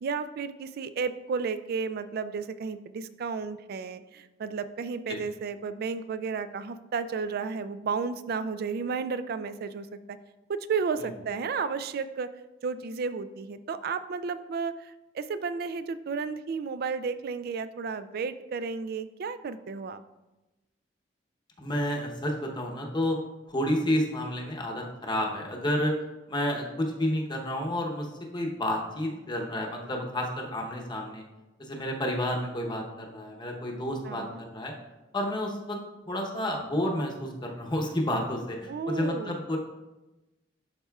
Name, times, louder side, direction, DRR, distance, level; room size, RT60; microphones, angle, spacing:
voice 1, 0.0-10.2 10.5-12.3 12.6-20.0 34.0-34.4 38.7-39.4, right 5 dB, 55° right, 13 dB, 0.3 m, -33 dB
voice 2, 21.6-23.2 23.5-26.0 26.3-28.1 28.3-31.2 31.6-34.7 35.1-35.8 36.1-39.6, left 1 dB, 25° left, 0 dB, 0.8 m, -30 dB
11.5 x 4.2 x 2.3 m, 1.1 s
head